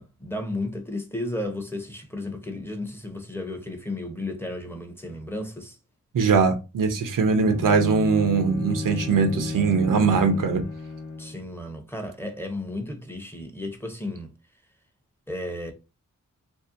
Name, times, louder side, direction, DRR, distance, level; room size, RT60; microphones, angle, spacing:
voice 1, 0.0-5.8 11.2-14.3 15.3-15.7, left 1 dB, 5° left, 0.6 m, -33 dB
voice 2, 6.1-10.6, right 5 dB, 75° right, 0.6 m, -21 dB
Bowed string instrument, 7.4-11.5, left 3 dB, 60° left, 0.9 m, -33 dB
2.6 x 2.1 x 2.4 m
cardioid pair, 45°, 33 cm